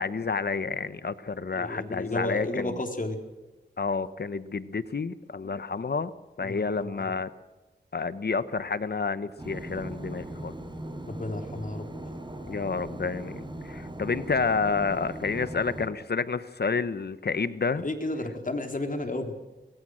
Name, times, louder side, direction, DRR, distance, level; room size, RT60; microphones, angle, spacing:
voice 1, 0.0-2.8 3.8-6.1 6.4-7.3 7.9-10.5 12.5-17.8, left 4 dB, 65° left, 14 dB, 1.1 m, -29 dB
voice 2, 1.5-3.2 6.4-7.0 11.1-11.9 17.8-19.3, left 2 dB, 45° left, 5 dB, 3.7 m, -32 dB
sound 1, 9.4-15.9, right 1 dB, 25° right, 5.4 m, -39 dB
23.5 x 21.5 x 6.4 m, 1.1 s
wide cardioid pair, 65°, 18 cm